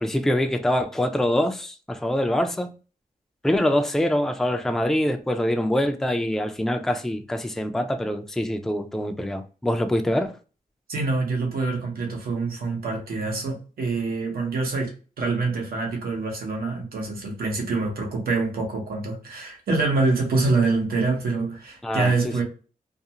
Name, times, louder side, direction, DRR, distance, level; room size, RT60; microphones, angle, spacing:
voice 1, 0.0-2.7 3.4-10.3 21.8-22.4, left 1 dB, 5° left, 0.3 m, -24 dB
voice 2, 10.9-22.4, right 3 dB, 90° right, 0.9 m, -25 dB
2.5 x 2.3 x 2.7 m
cardioid pair, 85°, 15 cm